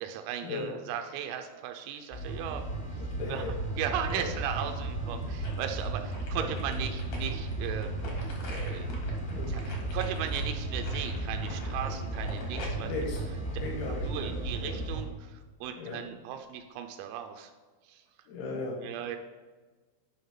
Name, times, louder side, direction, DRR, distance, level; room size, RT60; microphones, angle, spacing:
voice 1, 0.0-2.6 2.9-3.0 3.3-8.1 8.4-8.9 9.5-12.9 14.0-17.5 17.8-18.0 18.8-19.2, right 9 dB, 90° right, 5 dB, 3.3 m, -37 dB
sound 1, 2.1-15.0, right 2 dB, 35° left, 0.5 m, -35 dB
voice 2, 3.0-3.5 4.1-4.3 5.2-5.3 6.3-6.5 9.3-9.5 12.8-13.2 13.6-14.3 14.6-14.8 15.8-16.0 18.3-18.8, left 3 dB, 85° left, -3 dB, 4.0 m, -36 dB
sound 2, 3.4-11.4, right 1 dB, 65° right, 2.7 m, -41 dB
sound 3, 4.9-5.7 6.1-14.2 14.6-14.7, left 2 dB, 70° left, 1.7 m, -45 dB
9.8 x 5.5 x 3.6 m, 1.3 s
omnidirectional pair, 5.9 m